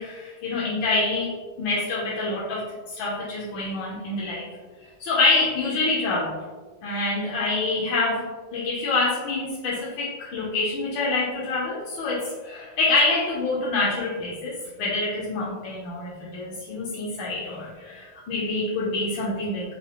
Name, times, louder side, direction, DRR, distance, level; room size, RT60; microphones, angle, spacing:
voice 1, 0.0-4.5 5.0-6.4 6.8-19.7, left 3 dB, 90° left, -6 dB, 1.5 m, -26 dB
5.2 x 3.3 x 2.2 m, 1.4 s
omnidirectional pair, 2.1 m